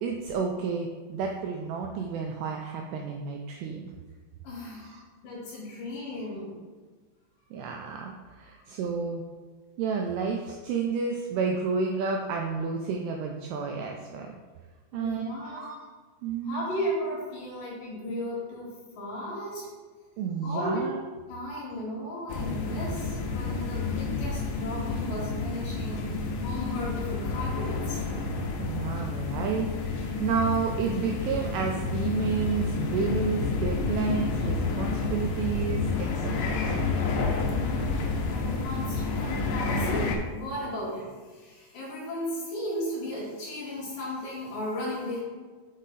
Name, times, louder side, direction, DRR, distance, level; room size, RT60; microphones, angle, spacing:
voice 1, 0.0-3.8 4.8-5.0 7.5-9.3 9.8-14.3 14.9-15.8 16.2-16.7 20.2-21.0 28.6-37.1, right 6 dB, 85° right, 2 dB, 2.4 m, -31 dB
voice 2, 4.4-4.9 5.2-6.6 14.9-15.7 16.4-19.7 20.4-20.9 21.3-28.0 37.5-45.2, left 1 dB, 60° left, -5 dB, 2.9 m, -35 dB
sound 1, 22.3-40.2, left 4 dB, 75° left, 2.8 m, -29 dB
6.2 x 5.6 x 4.0 m, 1.4 s
omnidirectional pair, 5.2 m